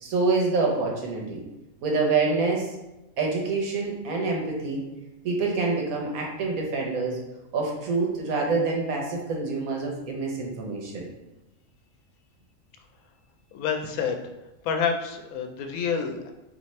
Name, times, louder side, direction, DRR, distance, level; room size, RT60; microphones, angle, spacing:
voice 1, 0.0-1.4 1.8-2.7 3.2-4.8 5.2-7.2 7.5-11.0, right 3 dB, 85° right, 0 dB, 1.4 m, -26 dB
voice 2, 13.5-14.2 14.6-16.3, left 6 dB, 90° left, 5 dB, 1.1 m, -28 dB
4.2 x 3.0 x 3.1 m, 0.99 s
omnidirectional pair, 1.4 m